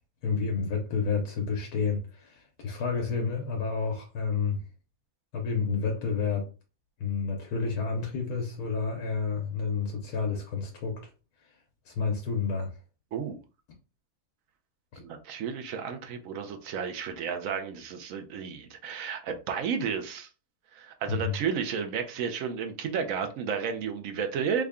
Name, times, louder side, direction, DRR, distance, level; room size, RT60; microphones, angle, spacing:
voice 1, 0.2-4.6 5.3-6.5 7.0-11.0 11.8-12.7 14.9-15.0 21.1-21.3, left 5 dB, 85° left, 1.3 m, -30 dB
voice 2, 15.0-20.3 20.7-24.6, right 6 dB, 70° right, 1.0 m, -32 dB
3.6 x 2.2 x 3.5 m
omnidirectional pair, 1.6 m